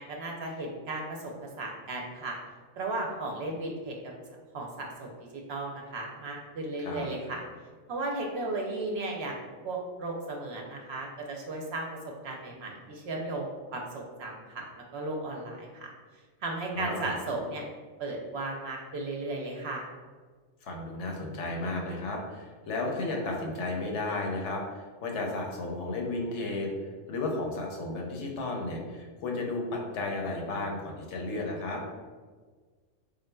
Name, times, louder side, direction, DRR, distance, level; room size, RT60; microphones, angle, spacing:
voice 1, 0.0-2.4 2.8-4.0 4.5-5.1 5.5-7.4 7.9-11.9 12.2-14.6 14.9-15.9 16.4-17.6 18.0-19.8, right 2 dB, 65° right, 0 dB, 0.8 m, -35 dB
voice 2, 16.7-17.2 20.6-26.7 27.1-31.8, left 2 dB, 70° left, 0 dB, 0.9 m, -33 dB
3.8 x 3.7 x 2.2 m, 1.5 s
omnidirectional pair, 1.3 m